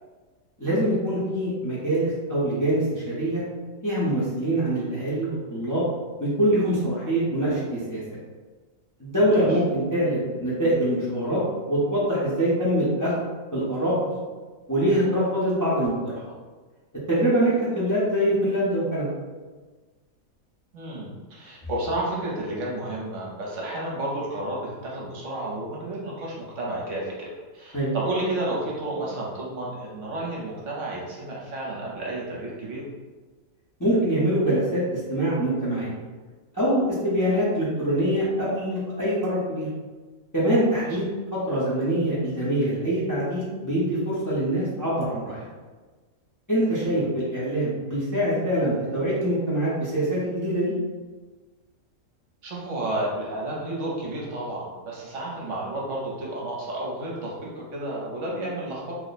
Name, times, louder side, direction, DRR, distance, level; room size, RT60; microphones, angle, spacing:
voice 1, 0.6-3.4 3.8-5.8 6.2-8.2 9.0-11.4 11.7-13.2 13.5-14.2 14.7-16.2 17.1-19.1 27.7-27.9 33.8-35.9 36.5-39.7 40.3-45.4 46.5-50.7, right 1 dB, 20° left, -9 dB, 0.6 m, -24 dB
voice 2, 20.7-32.8 40.7-40.9 46.8-47.1 52.4-58.9, right 1 dB, 65° right, -4 dB, 1.0 m, -31 dB
2.9 x 2.1 x 4.0 m, 1.3 s
omnidirectional pair, 1.5 m